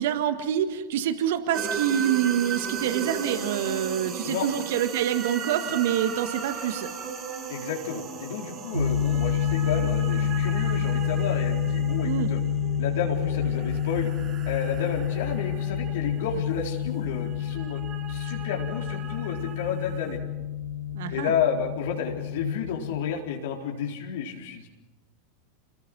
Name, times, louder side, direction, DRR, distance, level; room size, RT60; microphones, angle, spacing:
voice 1, 0.0-6.9 12.0-12.3 20.9-21.3, right 10 dB, 65° right, 9 dB, 1.7 m, -26 dB
sound 1, 1.5-20.2, right 6 dB, 35° right, 6.1 m, -37 dB
voice 2, 7.5-12.4 12.8-14.1 14.5-17.8 18.1-20.2 21.1-24.7, left 7 dB, 65° left, 0 dB, 4.1 m, -31 dB
sound 2, 8.7-23.2, left 7 dB, 85° right, 1.9 m, -28 dB
29.0 x 20.5 x 6.2 m, 1.0 s
hypercardioid pair, 90°, 0 cm